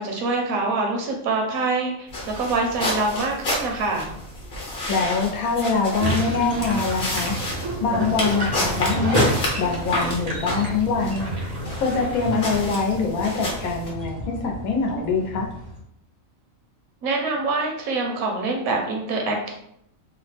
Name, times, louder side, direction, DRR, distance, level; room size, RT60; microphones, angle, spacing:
voice 1, 0.0-4.1 17.0-19.5, right 3 dB, 80° right, 0 dB, 1.1 m, -25 dB
sound 1, 2.1-13.9, left 1 dB, 45° left, 1.0 m, -30 dB
voice 2, 4.6-7.4 7.8-9.3 9.6-11.3 11.8-15.5, left 4 dB, 80° left, 1 dB, 1.1 m, -24 dB
sound 2, 6.0-15.8, right 2 dB, 50° right, 0.5 m, -30 dB
3.1 x 2.0 x 3.3 m, 0.74 s
omnidirectional pair, 1.5 m